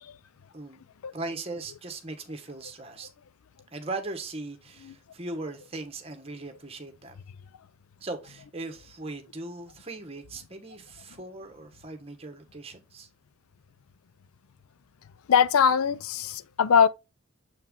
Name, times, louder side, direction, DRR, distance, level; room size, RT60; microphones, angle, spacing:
voice 1, 0.5-0.8 1.1-3.1 3.7-7.2 8.0-13.1, right 2 dB, 25° right, 1.2 m, -39 dB
voice 2, 15.3-16.9, left 7 dB, 90° left, 0.4 m, -21 dB
7.3 x 4.4 x 3.6 m
head